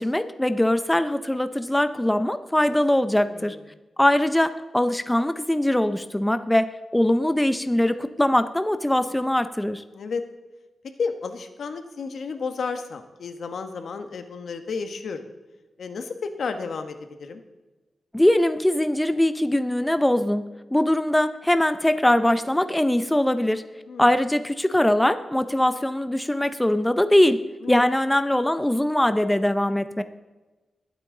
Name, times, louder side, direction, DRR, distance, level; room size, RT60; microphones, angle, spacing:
voice 1, 0.0-3.6 4.0-9.8 18.1-20.4 20.7-23.7 24.0-27.4 27.7-30.0, left 1 dB, 10° left, 11 dB, 0.6 m, -22 dB
voice 2, 3.2-3.6 9.9-10.2 11.0-15.3 15.8-17.4 23.9-24.1 27.6-27.8, left 5 dB, 75° left, 8 dB, 1.2 m, -32 dB
21.0 x 8.7 x 3.9 m, 1.2 s
wide cardioid pair, 110°, 0 cm